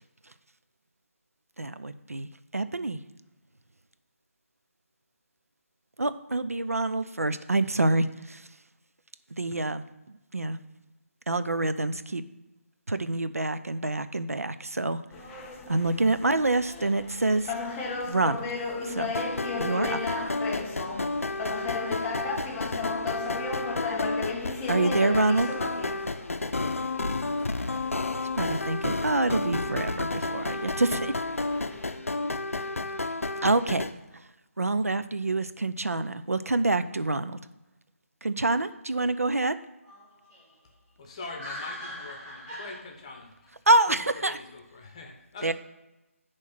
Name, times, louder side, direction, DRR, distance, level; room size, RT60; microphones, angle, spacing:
voice 1, 1.6-3.0 6.0-8.4 9.3-10.6 11.3-12.2 12.9-15.0 15.7-17.5 18.1-18.4 18.9-19.1 19.6-20.0 24.7-25.5 28.4-31.1 33.4-33.9 34.6-37.4 38.2-39.6 43.7-44.4 45.4-45.5, right 2 dB, 75° right, 0.5 m, -26 dB
sound 1, 15.1-32.0, left 4 dB, 10° left, 0.3 m, -36 dB
sound 2, 19.1-33.9, left 2 dB, 65° left, 0.5 m, -31 dB
voice 2, 39.8-42.8, left 1 dB, 15° right, 2.2 m, -42 dB
voice 3, 41.0-43.6 43.9-45.5, left 3 dB, 25° left, 0.8 m, -43 dB
9.6 x 3.2 x 5.8 m
figure-of-eight pair, 155°, 8 cm